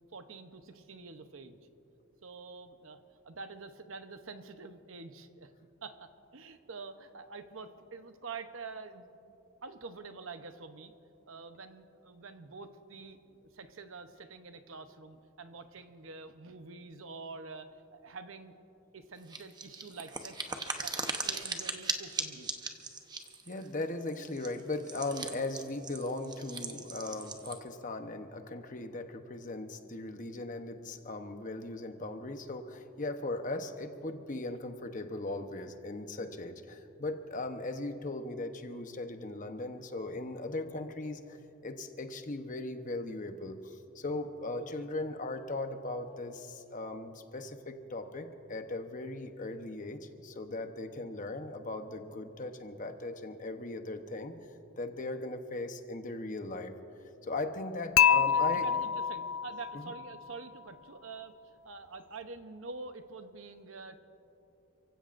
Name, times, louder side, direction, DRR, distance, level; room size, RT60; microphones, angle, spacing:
voice 1, 0.1-1.6 2.2-5.5 5.8-9.1 9.6-10.9 11.3-18.6 18.9-20.5 20.8-22.5 23.5-23.7 27.1-27.3 44.6-44.8 58.0-61.3 61.6-64.0, right 4 dB, 70° right, 9 dB, 0.9 m, -47 dB
sound 1, 19.3-27.6, right 4 dB, 20° right, 0.9 m, -39 dB
voice 2, 23.5-54.3 54.8-56.7 57.3-58.6 59.7-59.8, left 2 dB, 40° left, 6 dB, 0.9 m, -38 dB
Dishes pots and pans / Chink clink, 58.0-60.1, left 8 dB, 65° left, 0.3 m, -26 dB
29.5 x 16.0 x 2.6 m, 2.9 s
head